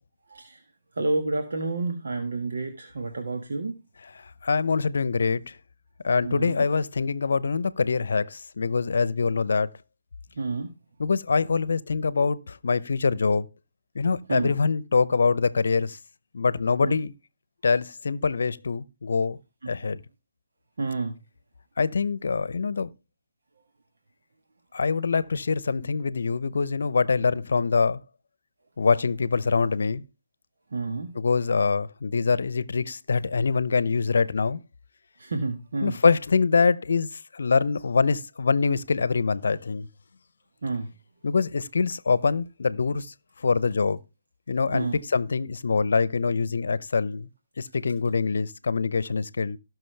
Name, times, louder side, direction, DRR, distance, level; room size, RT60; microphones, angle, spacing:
voice 1, 1.0-3.7 6.2-6.5 10.4-10.7 14.3-14.5 16.8-16.9 20.8-21.2 30.7-31.2 35.2-36.0 40.6-40.9 44.7-45.0, right 3 dB, 70° right, 1.5 m, -29 dB
voice 2, 4.2-5.4 6.0-9.7 11.0-13.5 13.9-16.0 16.3-17.1 17.6-19.4 19.7-20.0 21.8-22.9 24.7-28.0 28.8-30.0 31.1-34.6 35.8-39.9 41.2-43.1 43.4-44.0 44.5-47.3 47.6-49.6, left 4 dB, 65° left, 0.8 m, -24 dB
18.0 x 6.1 x 3.4 m
figure-of-eight pair, 145°, 0 cm